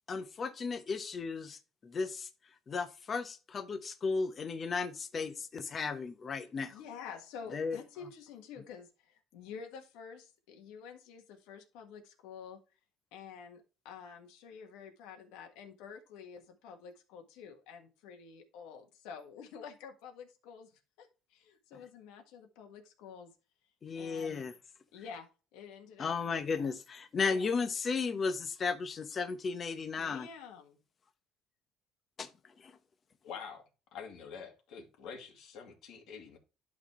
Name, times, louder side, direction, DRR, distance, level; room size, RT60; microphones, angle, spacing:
voice 1, 0.1-2.3 2.7-6.8 7.5-7.8 23.8-24.5 26.0-30.3 32.2-32.3 32.6-32.7, left 5 dB, 35° left, 1.0 m, -35 dB
voice 2, 6.4-12.6 13.1-20.7 21.0-23.3 24.0-24.4 24.9-26.7 27.2-27.5 30.0-30.8, left 6 dB, 85° left, 1.7 m, -49 dB
voice 3, 33.2-33.6 33.9-36.4, left 6 dB, 65° left, 2.4 m, -46 dB
11.5 x 4.2 x 3.1 m
cardioid pair, 115°, 0 cm